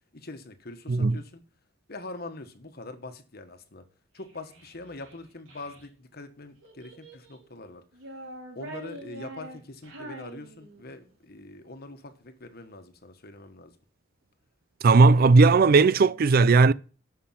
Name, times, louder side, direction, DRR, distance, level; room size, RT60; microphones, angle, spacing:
voice 1, 0.1-1.4 1.9-3.8 4.1-7.8 8.5-13.7, left 2 dB, 50° left, 1.4 m, -43 dB
Child speech kid speaking, 4.2-5.8 6.6-7.5 7.9-11.1, right 1 dB, 80° right, 4.0 m, -44 dB
voice 2, 14.8-16.7, right 4 dB, 50° right, 0.4 m, -17 dB
12.0 x 5.9 x 5.8 m
head